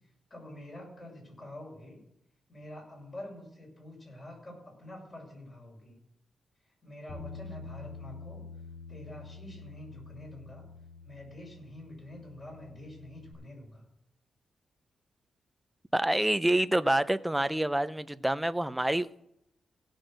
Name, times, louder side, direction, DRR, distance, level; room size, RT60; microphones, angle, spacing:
voice 1, 0.3-2.0 2.5-6.0 6.8-8.4 8.9-10.6 11.0-13.8, left 1 dB, 30° left, -1 dB, 6.4 m, -47 dB
Bass guitar, 7.1-13.3, left 4 dB, 55° left, 5.0 m, -47 dB
voice 2, 15.9-19.3, right 1 dB, 5° right, 13 dB, 0.5 m, -27 dB
17.0 x 6.3 x 6.3 m, 0.80 s
cardioid pair, 115°, 0 cm